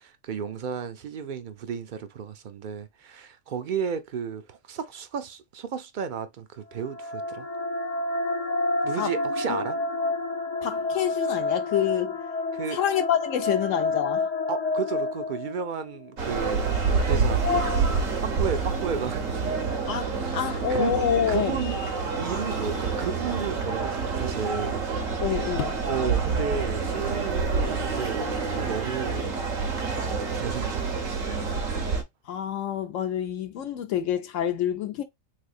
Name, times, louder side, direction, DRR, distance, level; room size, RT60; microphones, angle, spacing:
voice 1, 0.0-7.5 8.8-9.8 12.5-12.8 14.5-16.8 17.1-17.6 18.2-19.7 20.1-21.8 22.2-24.8 25.9-28.3 28.6-29.3 30.4-31.4, right 7 dB, 60° right, 0.5 m, -33 dB
sound 1, 6.7-16.0, left 2 dB, 45° left, 0.6 m, -29 dB
voice 2, 10.6-12.2 12.7-14.3 19.9-21.6 25.2-25.8 32.3-35.0, left 9 dB, 75° left, 0.9 m, -27 dB
sound 2, 16.2-32.0, right 4 dB, 90° right, 1.3 m, -27 dB
3.5 x 3.3 x 2.4 m
omnidirectional pair, 1.3 m